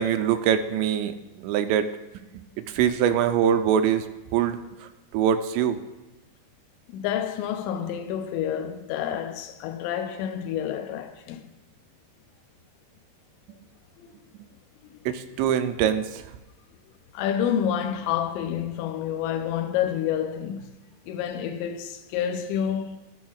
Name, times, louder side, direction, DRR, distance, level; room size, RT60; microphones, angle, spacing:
voice 1, 0.0-1.9 2.3-4.1 4.3-5.8 15.1-16.3, right 9 dB, 85° right, 2.8 m, -24 dB
voice 2, 6.9-11.4 14.0-14.1 17.1-20.7 21.1-23.0, left 9 dB, 90° left, 2.9 m, -28 dB
18.5 x 6.3 x 2.3 m
omnidirectional pair, 5.1 m